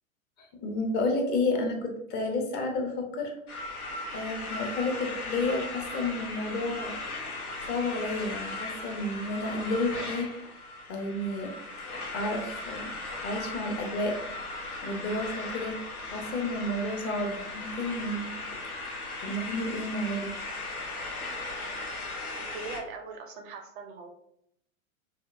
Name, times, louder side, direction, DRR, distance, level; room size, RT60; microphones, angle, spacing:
voice 1, 0.4-3.3 4.1-6.9 7.7-10.3 10.9-11.5 11.8-12.9 13.2-14.2 14.8-15.8 16.1-18.3 19.2-20.3, left 2 dB, 25° left, 3 dB, 0.6 m, -31 dB
sound 1, 3.5-22.8, left 2 dB, 90° left, 0.9 m, -37 dB
voice 2, 22.3-24.1, right 4 dB, 40° right, 5 dB, 0.5 m, -41 dB
4.9 x 2.1 x 2.5 m, 0.75 s
hypercardioid pair, 105°, 42 cm